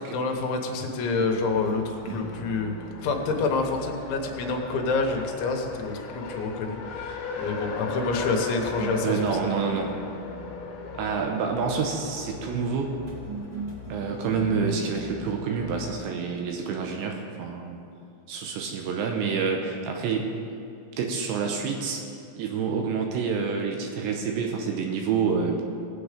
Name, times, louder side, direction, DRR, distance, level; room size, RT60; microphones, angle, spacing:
voice 1, 0.1-2.7 3.0-9.2, left 3 dB, 80° left, 2 dB, 3.5 m, -27 dB
Race car auto racing, 1.2-16.1, left 4 dB, 65° left, 2.9 m, -39 dB
sound 1, 1.5-4.9 8.7-12.1 13.1-16.9, right 3 dB, 30° right, 2.1 m, -41 dB
voice 2, 9.0-9.9 10.9-13.0 13.9-17.8 18.3-20.3 21.0-22.0 22.3-25.6, right 5 dB, 80° right, 2 dB, 3.0 m, -28 dB
19.0 x 7.8 x 5.1 m, 2.5 s
omnidirectional pair, 5.3 m